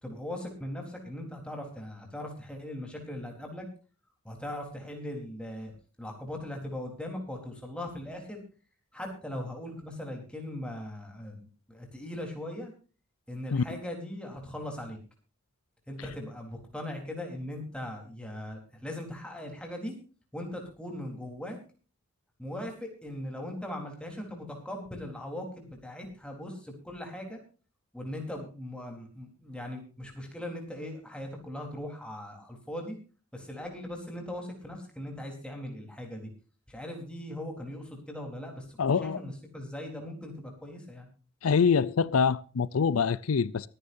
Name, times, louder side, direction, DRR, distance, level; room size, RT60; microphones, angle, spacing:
voice 1, 0.0-3.6 4.2-5.7 6.0-8.4 8.9-12.7 13.3-15.0 15.9-20.0 20.3-21.6 22.4-27.4 27.9-33.0 33.3-36.3 36.7-38.7 39.0-41.1, left 1 dB, 5° left, 3.8 m, -39 dB
voice 2, 38.8-39.2 41.4-43.7, left 6 dB, 80° left, 0.5 m, -25 dB
23.0 x 10.0 x 2.7 m
head